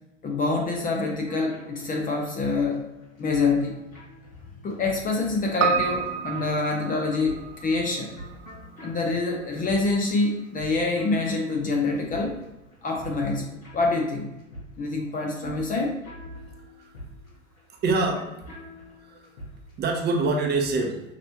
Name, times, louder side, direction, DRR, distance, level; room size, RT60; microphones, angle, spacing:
voice 1, 0.2-2.8 3.2-3.8 4.6-8.1 8.8-12.4 12.8-14.4 14.8-16.0, left 3 dB, 20° left, 1 dB, 0.6 m, -26 dB
sound 1, 1.2-19.8, left 1 dB, 90° left, 1.5 m, -45 dB
Piano, 5.6-10.1 10.4-10.5, right 7 dB, 65° right, 0.6 m, -31 dB
voice 2, 17.7-18.4 19.0-19.3 19.8-21.0, right 3 dB, 25° right, 2 dB, 0.8 m, -25 dB
5.9 x 3.2 x 2.8 m, 0.97 s
figure-of-eight pair, 90°, 40 cm